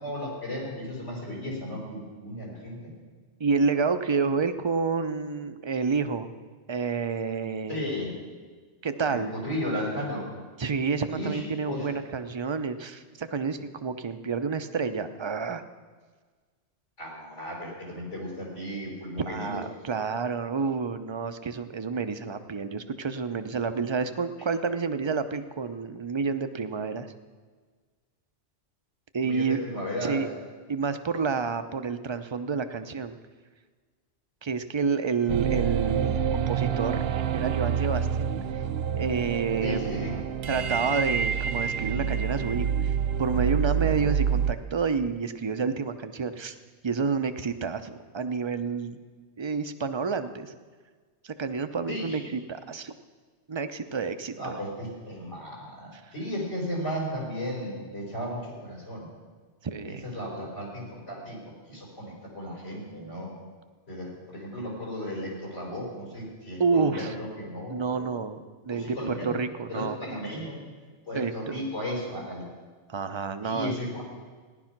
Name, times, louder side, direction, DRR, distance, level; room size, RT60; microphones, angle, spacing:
voice 1, 0.0-2.9 7.7-8.1 9.1-10.2 11.1-11.9 17.0-19.6 29.2-30.2 38.5-38.7 39.6-40.1 51.9-52.3 54.4-59.1 59.8-61.4 61.7-63.3 63.9-68.1 68.7-69.3 69.7-70.6 71.1-72.4 73.4-74.0, equal, 80° left, -3 dB, 5.2 m, -35 dB
voice 2, 3.4-6.3 6.7-7.8 8.8-9.3 10.6-15.6 19.2-27.1 29.1-29.6 30.0-30.3 30.7-33.2 34.4-37.0 37.3-38.6 39.0-40.0 40.5-46.5 46.8-49.0 49.4-50.5 51.2-53.0 53.5-54.6 59.6-60.1 66.6-67.1 67.7-70.0 71.1-71.6 72.9-73.7, right 5 dB, 30° right, 10 dB, 0.5 m, -29 dB
sound 1, 35.3-44.5, right 7 dB, 65° right, 0.8 m, -27 dB
15.5 x 11.0 x 5.9 m, 1.5 s
omnidirectional pair, 1.2 m